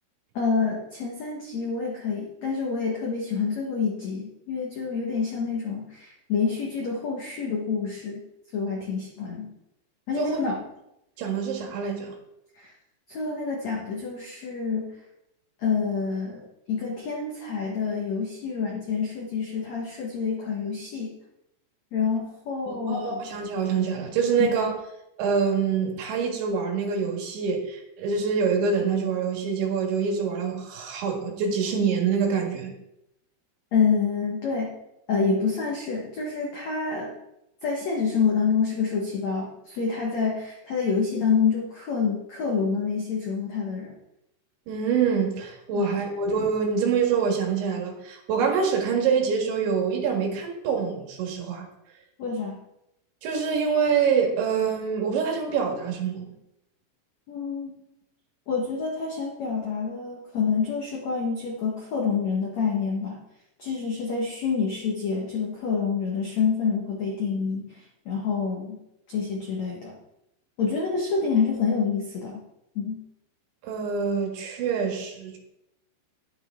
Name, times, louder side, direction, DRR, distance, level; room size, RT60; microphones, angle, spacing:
voice 1, 0.3-8.2 8.5-9.5 10.1-10.6 12.6-12.7 13.1-14.9 15.6-16.4 16.7-21.1 21.9-23.3 24.5-24.6 33.7-34.7 35.1-37.1 37.6-44.0 45.7-46.0 52.2-52.6 57.3-57.8 58.5-63.2 63.6-68.8 69.1-70.0 70.6-72.4 72.7-73.0, left 5 dB, 80° left, -2 dB, 1.5 m, -27 dB
voice 2, 11.2-12.2 22.7-24.8 25.2-32.7 44.7-51.7 53.2-56.3 73.6-75.4, right 6 dB, 70° right, 1 dB, 4.0 m, -25 dB
12.0 x 9.6 x 3.7 m, 0.86 s
omnidirectional pair, 5.7 m